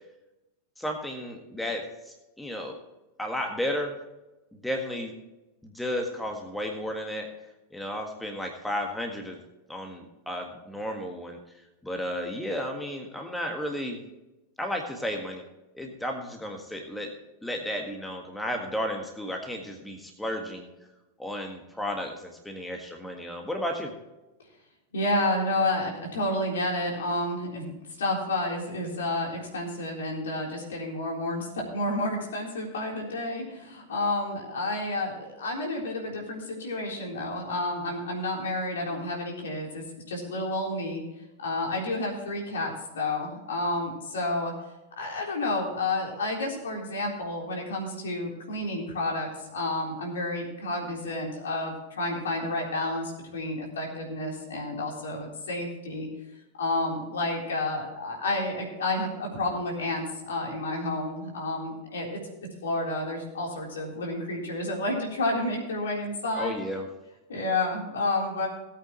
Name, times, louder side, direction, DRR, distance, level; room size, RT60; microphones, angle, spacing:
voice 1, 0.8-2.8 3.2-4.0 4.6-5.1 5.6-7.3 7.7-9.4 9.7-11.4 11.8-14.0 14.6-15.4 15.7-17.1 17.4-20.7 21.2-23.9 66.3-66.8, equal, 5° left, 2 dB, 1.6 m, -33 dB
voice 2, 24.9-27.7 28.0-41.0 41.4-44.5 45.0-56.1 56.6-62.2 62.6-66.5 67.3-68.5, left 2 dB, 65° left, -1 dB, 3.7 m, -30 dB
18.0 x 8.6 x 3.1 m, 1.0 s
figure-of-eight pair, 90°, 0 cm